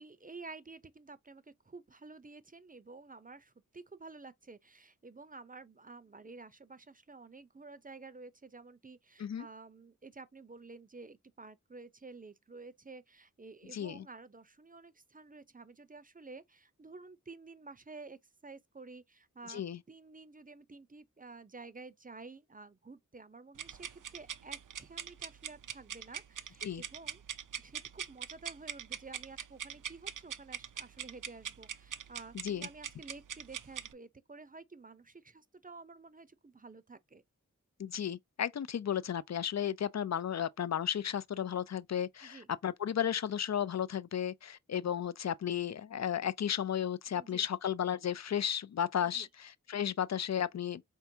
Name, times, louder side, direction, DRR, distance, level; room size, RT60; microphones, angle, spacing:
voice 1, 0.0-27.2 27.6-37.2 42.2-42.5 47.2-47.5 49.0-49.3, right 3 dB, 25° right, 0.6 m, -51 dB
voice 2, 13.7-14.0 19.5-19.8 26.6-26.8 32.3-32.7 37.8-50.8, left 9 dB, 55° left, 0.5 m, -34 dB
sound 1, 23.6-33.9, right 8 dB, 70° right, 0.5 m, -42 dB
4.5 x 3.4 x 2.7 m
cardioid pair, 45°, 33 cm